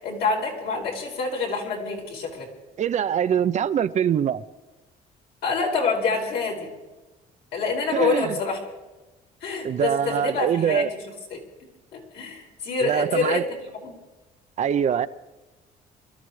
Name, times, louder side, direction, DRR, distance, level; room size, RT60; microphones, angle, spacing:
voice 1, 0.0-2.5 5.4-6.7 7.5-8.6 9.4-10.8 11.3-11.4 11.9-14.0, left 4 dB, 75° left, 4.9 m, -26 dB
voice 2, 2.8-4.4 7.9-8.4 9.6-10.9 12.8-13.4 14.6-15.1, right 9 dB, 45° right, 0.6 m, -23 dB
26.0 x 13.5 x 3.2 m
cardioid pair, 110°, 17 cm